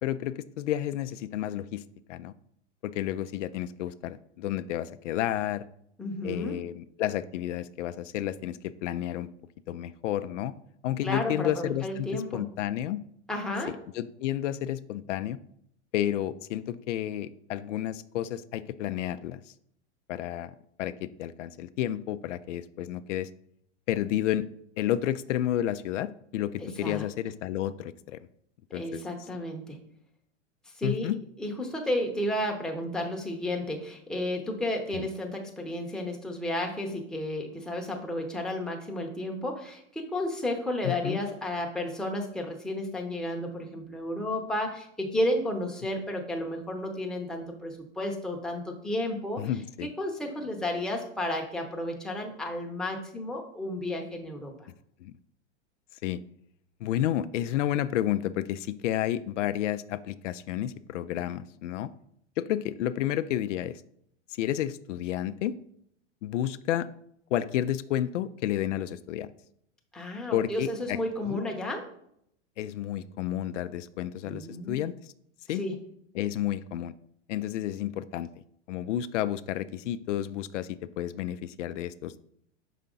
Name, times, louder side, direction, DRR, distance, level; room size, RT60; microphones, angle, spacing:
voice 1, 0.0-1.8 2.1-2.3 2.8-5.6 6.2-9.3 9.7-10.5 10.8-13.0 13.9-15.4 15.9-19.4 20.1-20.5 20.8-23.3 23.9-24.5 24.8-28.2 28.7-29.0 30.8-31.2 34.9-35.1 40.8-41.2 49.4-49.9 55.0-55.1 56.0-56.2 56.8-61.9 62.4-63.8 64.4-65.5 66.2-66.9 67.3-69.3 70.3-71.0 71.3-71.4 72.6-75.1 75.5-75.6 76.2-76.9 77.3-78.3 78.7-82.2, left 12 dB, 85° left, 13 dB, 0.5 m, -31 dB
voice 2, 6.0-6.6 11.0-12.4 13.3-13.8 26.6-27.1 28.7-29.8 30.8-31.1 31.4-49.4 49.8-54.7 69.9-71.9 74.2-74.9 75.5-75.8, left 1 dB, ahead, 0 dB, 0.7 m, -32 dB
5.6 x 5.0 x 3.8 m, 0.72 s
hypercardioid pair, 130°, 36 cm